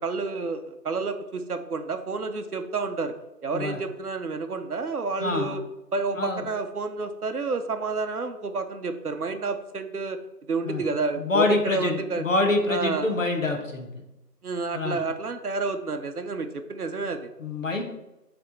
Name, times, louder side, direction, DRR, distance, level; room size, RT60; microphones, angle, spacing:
voice 1, 0.0-3.1 3.4-5.6 5.9-10.2 10.5-12.2 12.7-13.1 14.4-17.3, right 4 dB, 65° right, 7 dB, 0.7 m, -30 dB
voice 2, 5.2-5.5 6.2-6.4 10.6-10.8 11.2-13.9 14.7-15.0 17.4-17.8, left 2 dB, 50° left, 2 dB, 1.2 m, -25 dB
9.1 x 3.5 x 4.0 m, 0.95 s
figure-of-eight pair, 170°, 49 cm